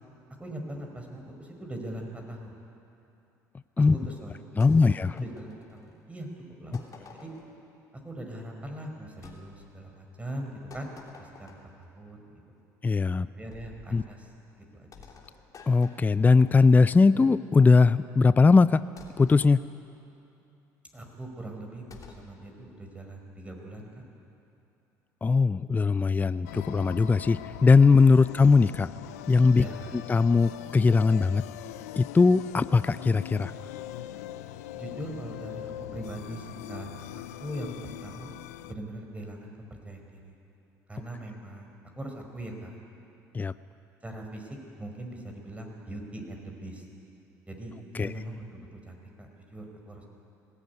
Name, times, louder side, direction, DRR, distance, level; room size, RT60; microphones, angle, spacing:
voice 1, 0.4-2.5 3.8-4.7 5.1-6.3 6.6-7.3 8.0-12.4 13.4-14.3 14.6-15.1 20.9-24.0 28.2-28.4 29.5-29.9 34.7-38.3 38.7-40.3 40.9-42.8 44.0-46.9 47.5-50.1, right 1 dB, 15° right, 2 dB, 4.9 m, -41 dB
sound 1, 4.6-6.0 6.7-7.6 9.2-9.4 10.7-11.8 13.5-13.9 14.9-17.0 19.0-19.5 21.9-22.3, left 5 dB, 45° left, 3.1 m, -51 dB
voice 2, 4.6-5.1 12.8-13.3 13.9-14.0 15.7-18.8 19.2-19.6 25.2-28.9 29.3-29.6 29.9-31.4 32.0-33.5 43.3-43.5 47.9-48.1, left 4 dB, 20° left, 15 dB, 0.5 m, -20 dB
sound 2, 26.4-38.7, left 13 dB, 90° left, 0.5 m, -41 dB
19.5 x 15.0 x 9.6 m, 2.7 s
hypercardioid pair, 70°, 8 cm